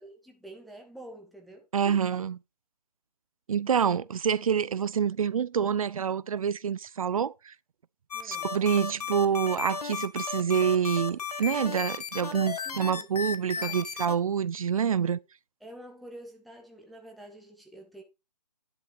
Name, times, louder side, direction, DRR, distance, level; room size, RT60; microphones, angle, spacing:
voice 1, 0.0-2.0 8.1-8.5 12.1-13.1 13.6-13.9 15.6-18.0, right 1 dB, ahead, 0.5 m, -48 dB
voice 2, 1.7-2.3 3.5-7.5 8.2-15.2, right 7 dB, 55° right, 0.5 m, -27 dB
sound 1, 8.1-14.2, left 5 dB, 60° left, 1.6 m, -34 dB
10.0 x 5.7 x 5.0 m
figure-of-eight pair, 155°, 21 cm